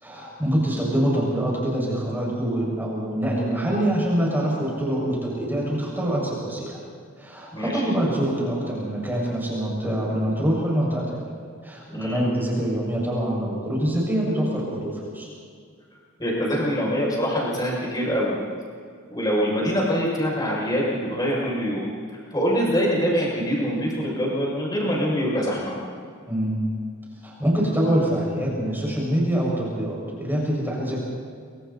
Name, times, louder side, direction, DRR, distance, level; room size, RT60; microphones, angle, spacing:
voice 1, 0.0-6.8 7.2-11.2 11.6-15.3 26.3-26.6 27.2-31.0, right 1 dB, 10° right, -4 dB, 6.2 m, -25 dB
voice 2, 7.5-7.8 11.9-12.2 16.2-18.3 19.1-25.7, equal, 20° left, -4 dB, 6.9 m, -24 dB
26.5 x 25.0 x 4.3 m, 2.2 s
head